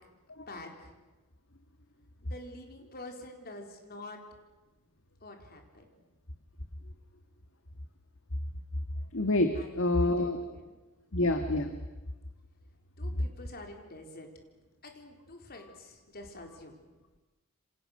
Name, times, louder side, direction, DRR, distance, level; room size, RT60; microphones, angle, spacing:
voice 1, 0.5-1.0 2.2-4.2 5.2-5.9 9.5-9.8 10.2-10.8 13.0-14.3 14.8-16.8, left 1 dB, 45° left, 3 dB, 4.3 m, -47 dB
voice 2, 9.1-10.4 11.1-11.7, left 2 dB, 65° left, 6 dB, 1.8 m, -27 dB
28.5 x 26.0 x 6.7 m, 1.1 s
head